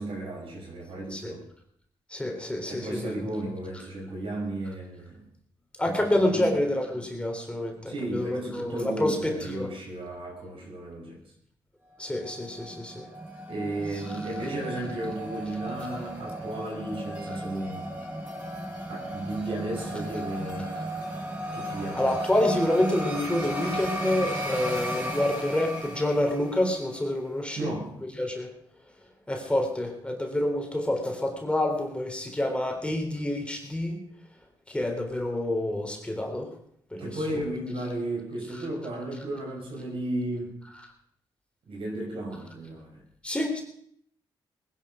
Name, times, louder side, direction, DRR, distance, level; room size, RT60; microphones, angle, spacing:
voice 1, 0.0-1.4 2.7-5.2 5.8-6.6 7.9-11.2 13.5-17.8 18.9-20.7 21.5-22.1 27.5-27.9 37.0-40.6 41.7-43.0, right 1 dB, 70° right, 0 dB, 6.0 m, -34 dB
voice 2, 2.1-3.2 5.8-9.7 12.0-13.0 21.9-27.7 28.2-28.5 29.3-34.0 34.7-36.6 36.9-37.2 43.2-43.6, left 1 dB, 10° left, 2 dB, 3.6 m, -28 dB
sound 1, 12.3-26.9, equal, 20° right, 7.1 m, -35 dB
19.5 x 11.0 x 5.1 m, 0.66 s
cardioid pair, 70°, 9 cm